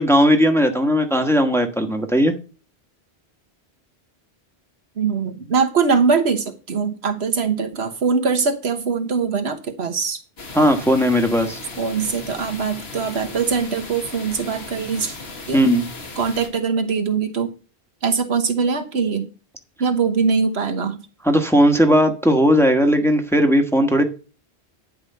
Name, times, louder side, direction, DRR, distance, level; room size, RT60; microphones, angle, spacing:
voice 1, 0.0-2.3 10.5-11.6 15.5-15.8 21.2-24.0, equal, ahead, 1.3 m, -17 dB
voice 2, 5.0-10.2 11.8-15.2 15.5-15.6 16.2-17.5 18.0-19.3 19.8-21.0, right 5 dB, 75° right, 1.4 m, -22 dB
sound 1, 10.4-16.5, left 3 dB, 70° left, 2.0 m, -37 dB
10.5 x 4.8 x 6.8 m
omnidirectional pair, 1.1 m